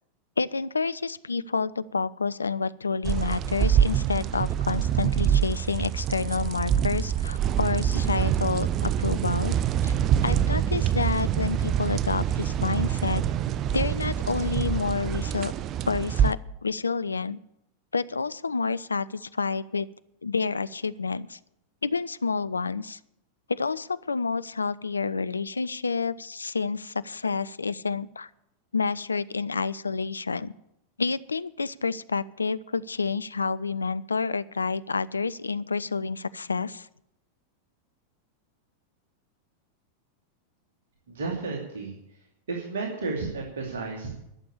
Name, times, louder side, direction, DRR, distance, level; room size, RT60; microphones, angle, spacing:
voice 1, 0.4-9.6 9.8-9.9 10.2-13.2 13.7-15.5 15.8-17.4 17.9-19.9 20.2-21.4 21.8-23.0 23.5-28.3 28.7-30.5 31.0-36.9, left 4 dB, 75° left, 17 dB, 0.4 m, -29 dB
sound 1, 3.0-16.3, right 9 dB, 35° right, 0.5 m, -25 dB
voice 2, 41.1-41.9 42.5-44.2, right 3 dB, 60° right, -1 dB, 2.5 m, -32 dB
11.5 x 7.0 x 9.8 m, 0.80 s
figure-of-eight pair, 90°, 0 cm